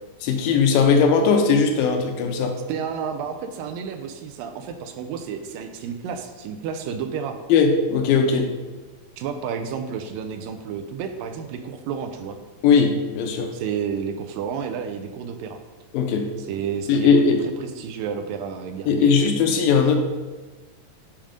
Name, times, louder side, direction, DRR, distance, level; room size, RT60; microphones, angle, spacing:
voice 1, 0.2-2.6 7.5-8.5 12.6-13.5 15.9-16.3 16.9-17.4 18.9-20.0, left 5 dB, 80° left, 4 dB, 2.4 m, -18 dB
voice 2, 2.7-7.4 9.2-12.4 13.5-15.6 16.5-17.1 17.6-19.1, right 7 dB, 80° right, 6 dB, 2.3 m, -31 dB
8.9 x 5.0 x 5.2 m, 1.3 s
omnidirectional pair, 4.2 m